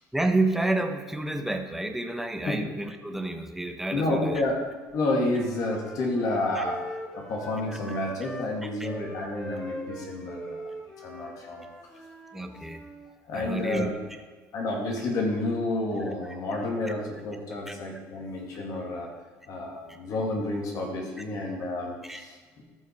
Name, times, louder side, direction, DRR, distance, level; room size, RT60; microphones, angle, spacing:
voice 1, 0.1-4.4 6.5-6.6 8.8-8.9 12.3-12.8 13.3-13.9 16.9-17.0 17.7-17.8 21.2-21.3 22.0-22.2, right 2 dB, 5° right, 5 dB, 1.1 m, -29 dB
voice 2, 3.9-4.6 4.9-10.6 11.0-11.7 13.3-13.9 14.5-19.1 19.5-22.6, left 2 dB, 60° left, -1 dB, 2.5 m, -30 dB
Wind instrument woodwind instrument, 4.7-8.5 8.8-13.1, equal, 10° left, 1.6 m, -42 dB
14.0 x 5.7 x 4.7 m, 1.4 s
supercardioid pair, 85°, 7 cm